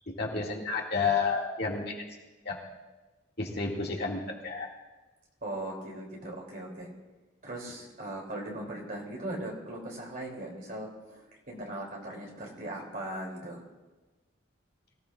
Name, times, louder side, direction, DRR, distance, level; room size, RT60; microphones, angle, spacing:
voice 1, 0.1-1.9 2.4-2.6 3.4-4.7, left 4 dB, 50° left, -2 dB, 2.2 m, -30 dB
voice 2, 5.4-6.9 7.4-13.6, right 1 dB, 45° right, -1 dB, 3.0 m, -39 dB
23.0 x 15.5 x 2.5 m, 1.2 s
head